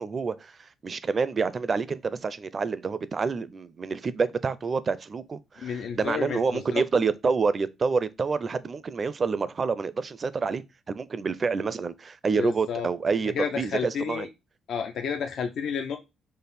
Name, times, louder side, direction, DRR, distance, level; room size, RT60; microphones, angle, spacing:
voice 1, 0.0-14.3, right 5 dB, 40° right, 0.4 m, -28 dB
voice 2, 5.6-6.8 12.4-12.9 13.3-14.3 14.7-16.0, left 7 dB, 70° left, 0.5 m, -31 dB
5.3 x 2.1 x 4.1 m
cardioid pair, 90°, 0 cm